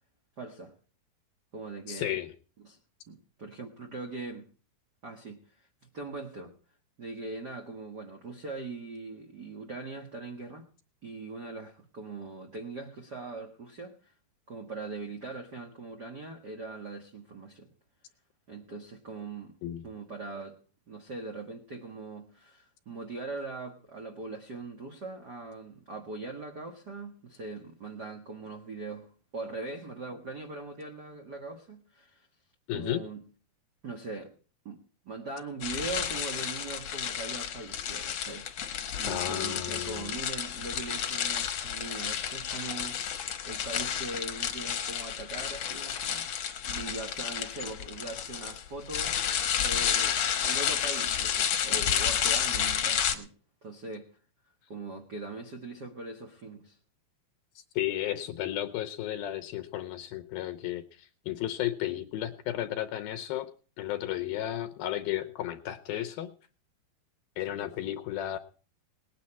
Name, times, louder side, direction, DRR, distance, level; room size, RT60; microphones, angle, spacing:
voice 1, 0.4-0.7 1.5-2.2 2.6-2.8 3.1-4.5 5.0-6.5 7.0-10.7 11.0-13.9 14.5-17.7 18.5-19.5 19.8-20.6 20.9-32.3 32.7-33.2 33.8-34.3 34.6-43.0 43.4-46.3 46.6-53.3 53.6-54.1 54.7-56.8, right 3 dB, 75° right, 0.9 m, -41 dB
voice 2, 1.9-2.3 19.6-19.8 32.7-33.0 38.9-40.1 57.8-63.5 63.8-66.3 67.4-68.4, left 13 dB, 80° left, 2.4 m, -33 dB
sound 1, 35.6-53.1, left 9 dB, 60° left, 1.8 m, -31 dB
19.5 x 9.5 x 4.2 m
omnidirectional pair, 4.6 m